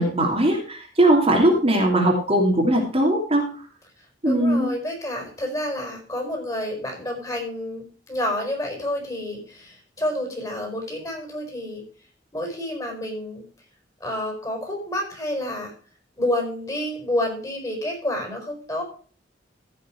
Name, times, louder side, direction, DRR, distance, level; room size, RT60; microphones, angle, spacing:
voice 1, 0.0-3.5 4.2-4.7, right 1 dB, 35° right, 0 dB, 2.7 m, -19 dB
voice 2, 4.2-11.8 12.3-13.4 14.0-15.7 16.2-18.8, left 1 dB, 20° left, 1 dB, 5.1 m, -29 dB
15.0 x 6.4 x 4.7 m, 0.40 s
head